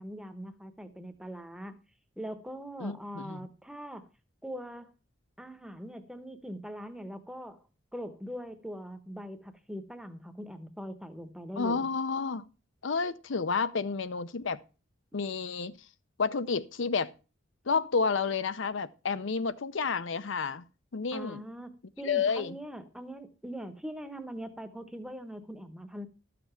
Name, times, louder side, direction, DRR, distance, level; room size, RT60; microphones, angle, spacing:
voice 1, 0.0-1.8 2.2-4.1 4.4-4.9 5.4-7.6 7.9-11.9 21.1-26.1, equal, 5° right, 0.9 m, -42 dB
voice 2, 2.8-3.5 11.6-12.4 12.8-14.6 15.1-15.7 16.2-17.1 17.7-20.6 20.9-21.4 22.0-22.6, left 5 dB, 70° left, 0.6 m, -30 dB
12.5 x 6.8 x 5.7 m
head